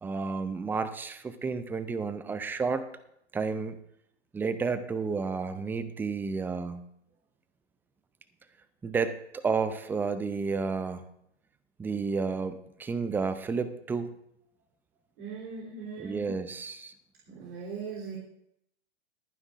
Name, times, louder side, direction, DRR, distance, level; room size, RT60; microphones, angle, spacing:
voice 1, 0.0-2.9 3.3-3.8 4.3-6.8 8.8-11.0 11.8-14.1 16.0-16.9, right 4 dB, 5° right, 12 dB, 0.4 m, -31 dB
voice 2, 15.2-16.3 17.3-18.2, right 5 dB, 50° right, -5 dB, 3.3 m, -39 dB
22.0 x 9.7 x 2.5 m, 0.75 s
hypercardioid pair, 120°, 35 cm